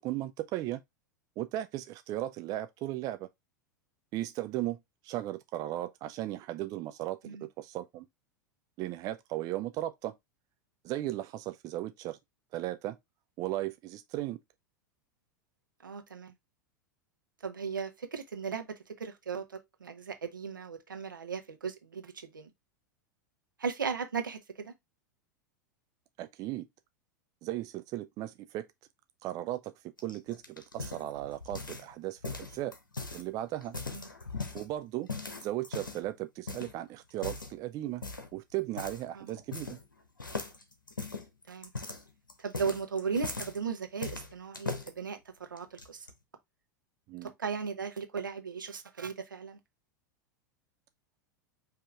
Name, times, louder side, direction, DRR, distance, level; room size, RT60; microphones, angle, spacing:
voice 1, 0.0-0.8 1.4-3.3 4.1-4.8 5.0-8.1 8.8-10.1 10.8-12.2 12.5-13.0 13.4-14.4 26.2-26.7 27.4-28.7 29.2-29.7 30.0-30.4 30.7-32.7 33.1-33.8 34.5-35.1 35.4-38.0 38.3-39.8 47.1-47.3, right 15 dB, 35° right, 0.4 m, -36 dB
voice 2, 15.8-16.3 17.4-18.7 19.0-22.5 23.6-24.7 33.9-34.1 39.1-39.3 41.5-41.7 42.4-45.2 45.5-46.1 47.2-49.6, right 5 dB, 80° right, 0.9 m, -36 dB
sound 1, 30.0-31.9 32.2-33.2 33.6-34.7 35.1-36.1 36.5-36.7 37.2-37.5 38.0-38.3 38.8-39.0 39.3-39.9 40.2-43.6 44.0-44.9 45.6-46.1, left 3 dB, 85° left, 1.0 m, -39 dB
5.1 x 2.9 x 3.4 m
figure-of-eight pair, 90°, 11 cm